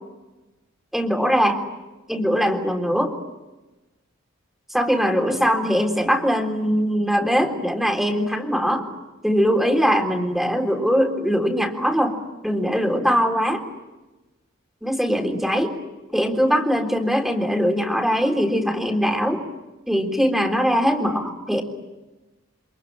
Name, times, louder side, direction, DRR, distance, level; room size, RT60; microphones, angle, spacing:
voice 1, 0.9-1.6 2.1-3.1 4.7-8.8 9.2-12.2 12.4-13.6 14.8-15.8 16.1-19.4 19.9-21.6, equal, ahead, 4 dB, 3.7 m, -21 dB
29.0 x 27.0 x 7.6 m, 1.1 s
head